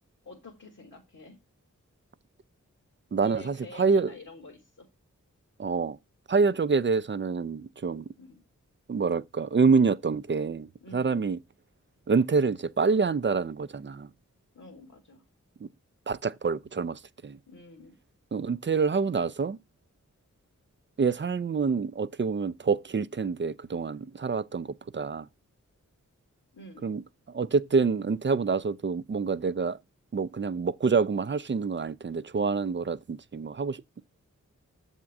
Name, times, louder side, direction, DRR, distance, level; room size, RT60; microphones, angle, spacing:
voice 1, 0.2-1.4 3.1-4.9 8.2-8.4 10.8-11.2 14.5-15.2 17.5-17.9 26.5-26.9, left 2 dB, 70° left, 1.8 m, -48 dB
voice 2, 3.1-4.1 5.6-6.0 6.3-8.1 8.9-11.4 12.1-14.1 16.1-17.4 18.3-19.6 21.0-25.3 26.8-27.0 27.3-29.8 30.1-33.8, right 5 dB, 40° right, 0.4 m, -27 dB
7.5 x 3.6 x 5.9 m
wide cardioid pair, 55°, 31 cm